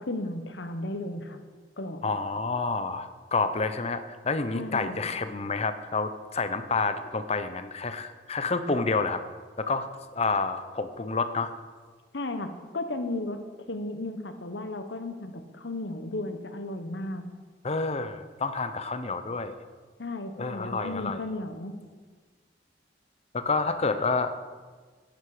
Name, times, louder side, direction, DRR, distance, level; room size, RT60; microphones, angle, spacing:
voice 1, 0.0-1.4 1.8-2.0 4.5-5.0 12.1-17.3 20.0-21.8, left 2 dB, 90° left, 7 dB, 1.1 m, -34 dB
voice 2, 2.0-9.2 9.6-11.5 17.6-19.6 20.4-21.2 23.3-24.3, left 4 dB, 35° left, 10 dB, 0.7 m, -29 dB
11.5 x 10.5 x 4.9 m, 1.4 s
head